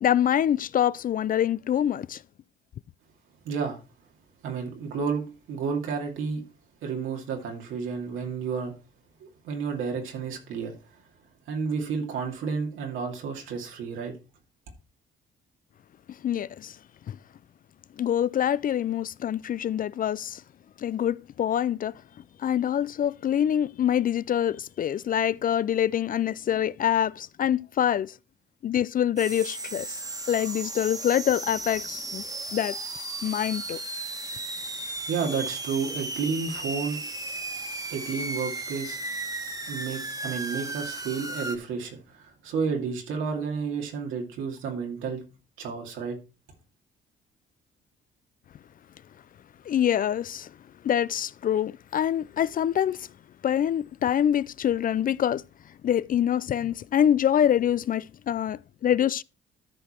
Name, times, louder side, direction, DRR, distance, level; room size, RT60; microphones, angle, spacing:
voice 1, 0.0-2.2 16.1-16.8 17.1-17.2 18.0-20.4 20.8-22.0 22.4-28.1 28.6-30.0 30.3-32.2 32.5-32.8 33.2-33.8 49.7-50.5 50.8-53.1 53.4-55.4 55.8-59.2, left 10 dB, 45° left, 0.4 m, -25 dB
voice 2, 3.4-3.8 4.4-6.4 6.8-8.7 9.2-10.7 11.5-14.1 35.1-37.0 37.9-39.0 39.7-45.2 45.6-46.2, right 5 dB, 85° right, 2.5 m, -31 dB
sound 1, 29.2-41.6, right 2 dB, 20° right, 1.5 m, -35 dB
13.5 x 4.9 x 4.4 m
cardioid pair, 90°, 20 cm